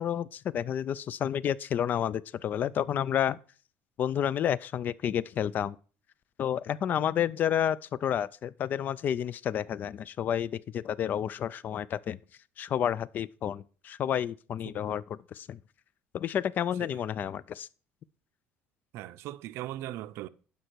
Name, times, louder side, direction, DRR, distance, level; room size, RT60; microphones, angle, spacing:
voice 1, 0.0-3.4 4.0-5.8 6.4-12.2 12.6-15.6 16.1-17.7, left 9 dB, 45° left, 0.4 m, -30 dB
voice 2, 18.9-20.3, right 14 dB, 70° right, 0.5 m, -39 dB
11.0 x 5.3 x 4.5 m
cardioid pair, 140°, 4 cm